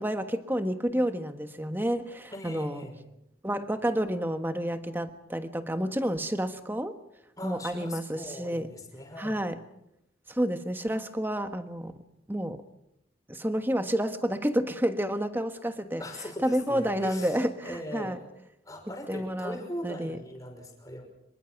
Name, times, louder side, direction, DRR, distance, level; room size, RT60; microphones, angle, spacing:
voice 1, 0.0-2.9 3.4-7.0 7.4-8.7 9.2-9.6 10.3-12.0 12.3-12.6 13.3-16.0 16.4-18.2 19.1-19.6 19.8-20.2, equal, 10° right, 8 dB, 1.3 m, -30 dB
voice 2, 2.3-3.0 7.4-9.4 16.0-18.2 18.6-21.1, equal, 20° left, 2 dB, 5.7 m, -40 dB
26.0 x 23.0 x 6.0 m, 0.84 s
head